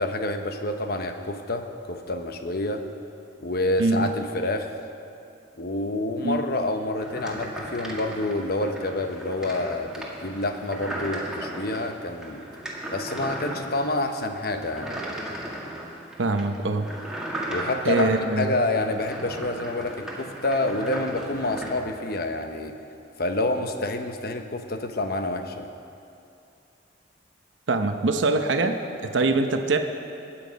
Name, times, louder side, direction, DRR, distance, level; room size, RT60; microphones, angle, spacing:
voice 1, 0.0-2.8 3.4-4.8 5.6-12.4 12.9-14.9 17.5-18.1 18.4-22.8 23.2-25.7, left 2 dB, 55° left, 6 dB, 0.9 m, -28 dB
sound 1, 7.0-21.8, right 1 dB, 5° right, 1.8 m, -36 dB
voice 2, 16.2-16.9 17.8-18.5 27.7-29.8, right 3 dB, 85° right, 6 dB, 0.8 m, -23 dB
20.5 x 8.7 x 5.2 m, 2.6 s
head